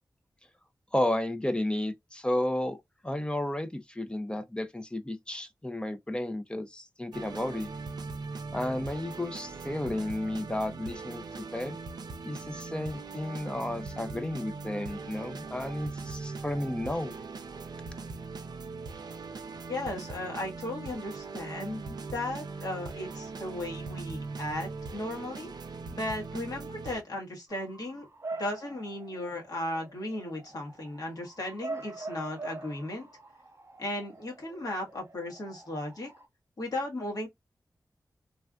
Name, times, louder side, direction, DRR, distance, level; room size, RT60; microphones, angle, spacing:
voice 1, 0.9-2.8 3.0-7.7 8.5-11.8 12.2-17.1, left 1 dB, 15° left, 0.5 m, -32 dB
sound 1, 7.1-27.0, right 4 dB, 70° right, 0.5 m, -40 dB
voice 2, 19.7-25.5 25.9-33.1 33.8-36.1 36.6-37.3, left 1 dB, 60° left, 1.5 m, -36 dB
Bark / Motor vehicle (road) / Siren, 27.5-36.3, right 3 dB, 40° right, 1.0 m, -44 dB
3.3 x 2.4 x 2.3 m
wide cardioid pair, 85°, 7 cm